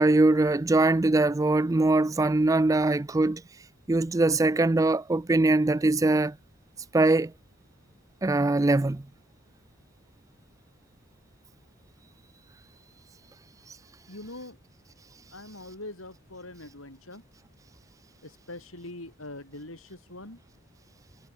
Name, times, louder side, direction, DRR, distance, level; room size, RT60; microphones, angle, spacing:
voice 1, 0.0-3.4 3.9-6.3 6.9-7.3 8.2-9.0, right 2 dB, 15° right, 0.4 m, -22 dB
voice 2, 14.1-14.6 15.3-17.2 18.2-20.4, left 2 dB, 85° left, 7.2 m, -43 dB
head